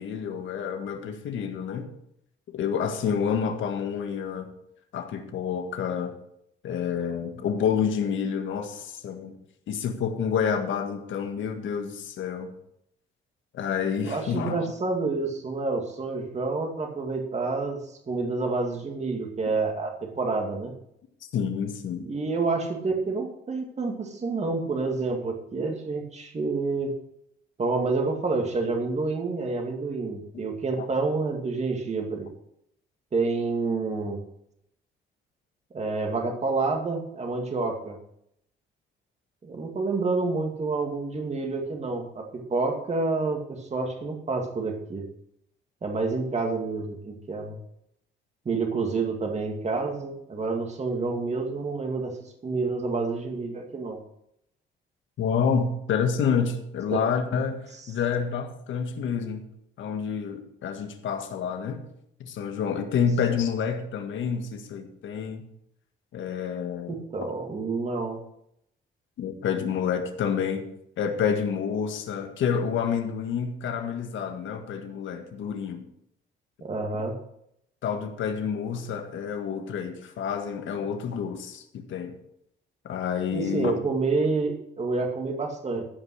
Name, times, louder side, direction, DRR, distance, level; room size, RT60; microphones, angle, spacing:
voice 1, 0.0-1.9 2.5-4.5 4.9-6.1 6.6-9.4 9.7-12.5 13.5-14.6 21.3-22.1 30.8-30.9 55.2-59.5 59.8-61.8 62.2-65.5 66.1-67.0 69.2-70.7 71.0-75.8 77.8-82.1 82.8-83.7, left 7 dB, 75° left, 6 dB, 1.8 m, -28 dB
voice 2, 14.0-17.8 18.1-20.7 22.0-26.9 27.6-32.3 33.1-34.2 35.7-38.0 39.4-45.0 45.8-47.5 48.5-52.1 52.4-54.0 56.9-57.0 66.9-68.2 76.6-77.2 83.3-85.8, right 3 dB, 35° right, 2 dB, 2.3 m, -28 dB
14.5 x 5.4 x 6.4 m, 0.75 s
cardioid pair, 90°, 20 cm